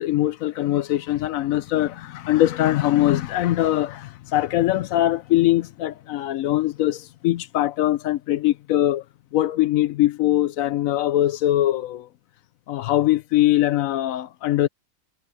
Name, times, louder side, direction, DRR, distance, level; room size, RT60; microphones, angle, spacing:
voice 1, 0.0-9.0 9.3-12.1 12.7-14.7, left 14 dB, 75° left, 1.0 m, -22 dB
omnidirectional pair, 1.5 m